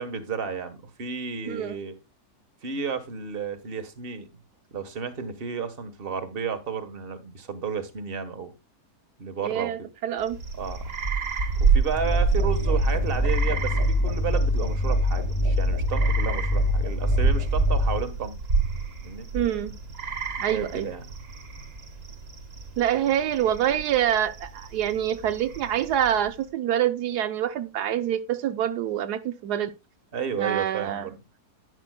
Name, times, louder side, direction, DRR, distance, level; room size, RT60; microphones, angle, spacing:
voice 1, 0.0-1.9 2.6-4.3 4.7-8.5 9.2-9.7 10.6-10.8 11.6-18.3 19.0-19.3 20.5-21.0 30.1-31.1, right 6 dB, 40° right, 1.4 m, -32 dB
voice 2, 1.5-1.8 9.4-10.4 19.3-19.7 20.4-20.9 22.8-29.7 30.4-31.1, right 10 dB, 85° right, 1.2 m, -26 dB
sound 1, 10.2-26.4, right 5 dB, 55° right, 1.8 m, -30 dB
sound 2, 11.9-18.0, left 1 dB, 15° right, 1.4 m, -24 dB
11.0 x 9.8 x 2.2 m
omnidirectional pair, 1.7 m